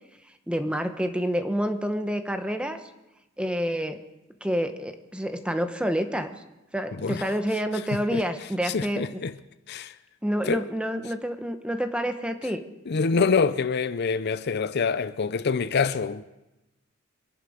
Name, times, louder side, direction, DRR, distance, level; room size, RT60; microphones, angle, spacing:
voice 1, 0.5-2.8 3.4-4.0 4.4-6.4 6.7-9.2 10.2-12.6, equal, 5° right, 1.0 m, -28 dB
voice 2, 8.6-9.3 9.7-9.9 10.5-10.6 12.9-16.2, left 5 dB, 55° left, 0.5 m, -25 dB
25.5 x 11.0 x 5.1 m
head